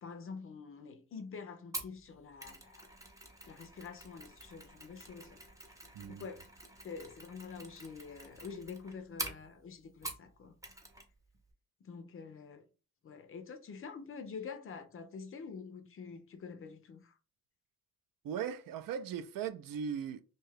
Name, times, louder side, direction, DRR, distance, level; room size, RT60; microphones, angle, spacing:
voice 1, 0.0-2.9 3.5-5.4 6.1-6.5 6.8-10.5 11.8-12.7 13.0-17.1, left 5 dB, 40° left, 0.4 m, -47 dB
Mechanisms, 1.7-10.3 10.6-11.1 11.3-11.5, right 2 dB, 10° right, 0.5 m, -47 dB
voice 2, 5.9-6.3 18.2-20.2, right 7 dB, 80° right, 0.5 m, -38 dB
2.7 x 2.3 x 3.2 m
wide cardioid pair, 145°, 33 cm